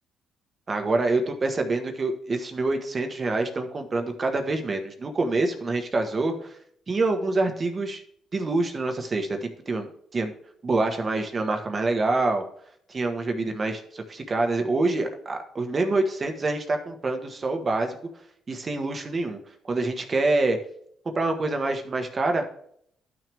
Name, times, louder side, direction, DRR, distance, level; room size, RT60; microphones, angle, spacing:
voice 1, 0.7-6.6 6.9-8.0 8.3-10.3 10.6-12.4 12.9-17.9 18.5-19.4 19.6-20.6 21.1-22.5, right 2 dB, 35° right, 5 dB, 1.4 m, -26 dB
11.5 x 6.2 x 3.5 m, 0.67 s
cardioid pair, 90°, 0 cm